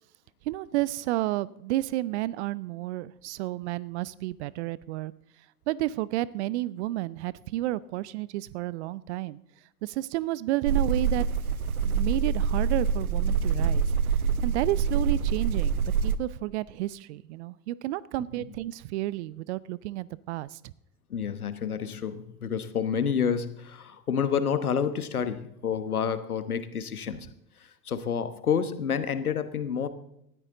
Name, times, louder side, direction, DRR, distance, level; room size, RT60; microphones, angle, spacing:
voice 1, 0.5-5.1 5.7-9.4 9.8-11.3 11.8-13.8 14.4-20.6, right 16 dB, 50° right, 21 dB, 0.6 m, -31 dB
sound 1, 10.6-16.2, right 6 dB, 75° right, 0.9 m, -26 dB
voice 2, 21.1-27.3 27.9-29.9, left 7 dB, 80° left, 12 dB, 1.2 m, -29 dB
19.0 x 13.5 x 3.9 m, 0.79 s
figure-of-eight pair, 85°, 43 cm